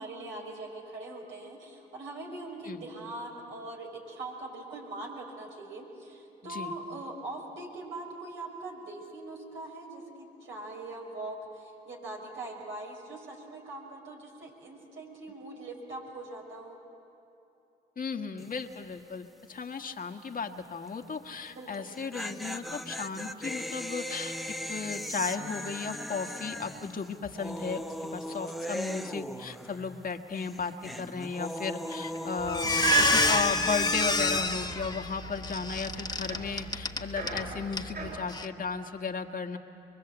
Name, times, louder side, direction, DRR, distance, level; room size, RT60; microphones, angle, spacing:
voice 1, 0.0-16.8 21.5-21.9, right 2 dB, 75° right, -1 dB, 5.3 m, -42 dB
voice 2, 6.4-6.7 18.0-39.6, left 5 dB, 45° left, 5 dB, 1.6 m, -35 dB
sound 1, 18.4-18.7 19.0-19.1 21.7-30.1 30.4-34.4, equal, ahead, 0.9 m, -38 dB
Squeak, 31.9-32.2 32.5-37.4 37.7-37.9 38.3-38.5, left 3 dB, 20° left, 1.4 m, -28 dB
sound 2, 32.4-38.2, right 4 dB, 50° right, 7.5 m, -34 dB
23.5 x 23.5 x 8.0 m, 2.9 s
supercardioid pair, 55°, 20 cm